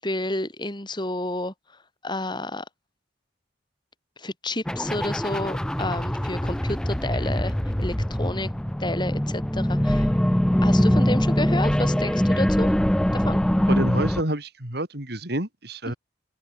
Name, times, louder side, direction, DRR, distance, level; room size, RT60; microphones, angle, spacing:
voice 1, 0.0-1.5 2.0-2.7 4.2-8.5 8.8-10.1 10.6-12.7 13.1-13.4 15.9-16.0, left 1 dB, 25° left, 7.1 m, -30 dB
sound 1, 4.7-14.2, equal, 5° left, 0.3 m, -23 dB
voice 2, 13.7-15.9, right 1 dB, 60° right, 5.0 m, -28 dB
open air
head